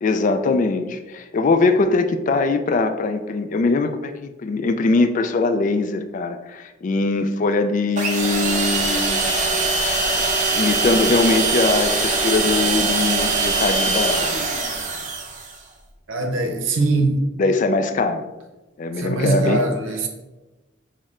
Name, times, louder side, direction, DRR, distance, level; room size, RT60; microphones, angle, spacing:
voice 1, 0.0-9.4 10.5-14.4 17.4-18.2 18.8-19.7, left 3 dB, 40° left, 9 dB, 0.3 m, -21 dB
sound 1, 8.0-15.6, right 3 dB, 40° right, 0.7 m, -22 dB
voice 2, 16.1-17.2 19.0-20.1, right 3 dB, 90° right, 5 dB, 0.7 m, -21 dB
6.2 x 2.1 x 3.6 m, 1.1 s
head